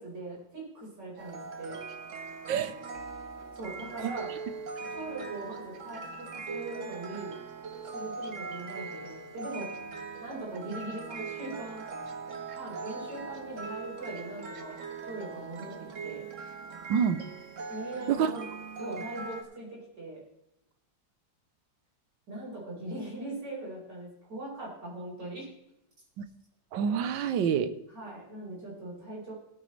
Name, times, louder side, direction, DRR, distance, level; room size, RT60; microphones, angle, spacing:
voice 1, 0.0-1.8 3.5-4.3 4.9-7.4 7.8-9.7 10.2-11.9 12.5-14.8 15.0-15.7 16.0-16.3 17.7-18.4 18.8-20.2 22.3-25.5 27.9-29.3, right 2 dB, 65° right, -5 dB, 5.4 m, -40 dB
sound 1, 1.2-19.4, right 4 dB, 50° right, 1.2 m, -41 dB
voice 2, 16.9-17.2 18.1-18.3 26.2-26.3 26.7-27.7, right 7 dB, 90° right, 12 dB, 1.5 m, -27 dB
17.5 x 9.0 x 3.2 m, 0.86 s
omnidirectional pair, 2.0 m